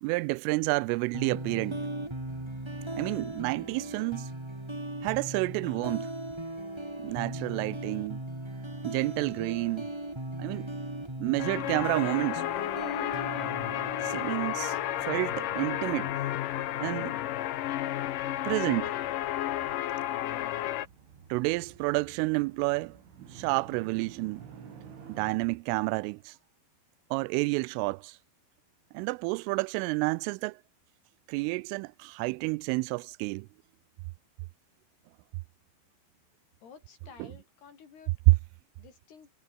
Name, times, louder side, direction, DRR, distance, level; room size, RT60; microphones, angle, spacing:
voice 1, 0.0-1.8 3.0-4.3 5.0-6.1 7.0-8.2 8.8-9.9 10.4-10.7 11.2-12.4 14.0-14.8 15.0-16.1 16.8-17.2 18.4-18.9 21.3-23.0 23.3-24.4 25.1-26.3 27.1-28.2 28.9-30.6 31.3-33.5 37.2-37.3 38.3-38.4, right 25 dB, 90° right, 3.1 m, -29 dB
sound 1, 1.1-16.1, right 1 dB, 10° right, 1.9 m, -38 dB
sound 2, 6.3-25.4, right 7 dB, 70° right, 7.3 m, -55 dB
sound 3, 11.4-20.9, left 13 dB, 75° left, 2.0 m, -32 dB
voice 2, 36.6-38.1 38.8-39.3, left 6 dB, 55° left, 5.6 m, -52 dB
omnidirectional pair, 5.6 m